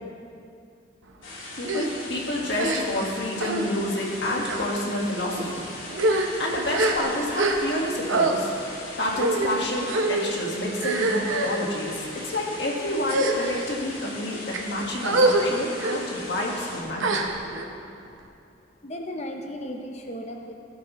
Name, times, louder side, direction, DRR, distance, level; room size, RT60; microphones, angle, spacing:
sound 1, 1.2-16.8, left 2 dB, 85° left, 2.4 m, -39 dB
voice 1, 1.6-8.5 9.0-17.4, left 1 dB, 60° left, -2 dB, 1.8 m, -29 dB
sound 2, 1.6-1.9 2.5-3.1 3.4-3.7 4.4-4.6 5.3-5.5 5.9-7.8 8.1-8.3 9.1-9.5 9.9-10.2 10.8-11.6 12.3-12.5 13.0-13.7 14.3-14.6 15.0-15.4 15.8-16.0 17.0-17.6, right 2 dB, 85° right, 0.9 m, -25 dB
voice 2, 18.8-20.5, equal, 35° left, 2 dB, 0.7 m, -35 dB
17.5 x 7.5 x 3.1 m, 2.5 s
head